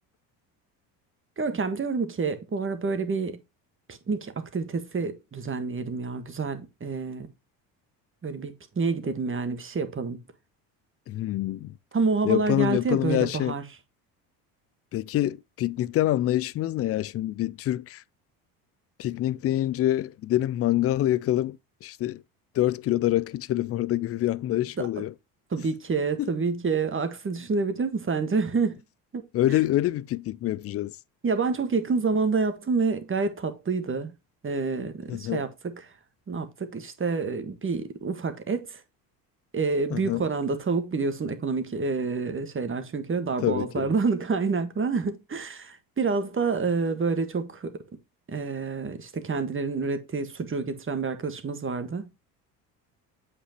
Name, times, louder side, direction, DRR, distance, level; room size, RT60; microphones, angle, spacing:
voice 1, 1.4-3.4 3.9-7.3 8.2-10.2 11.9-13.6 24.8-24.9 25.5-28.8 29.1-29.2 31.2-34.1 34.4-35.9 36.3-38.8 39.5-47.8 48.3-52.2, right 4 dB, 25° right, 1.5 m, -28 dB
voice 2, 11.1-11.8 12.2-13.6 14.9-18.0 19.0-22.2 22.5-25.1 26.2-26.3 29.3-31.0 35.1-35.4 39.9-40.3 43.4-43.9, left 14 dB, 35° left, 0.4 m, -26 dB
8.3 x 5.4 x 2.9 m
hypercardioid pair, 70°, 48 cm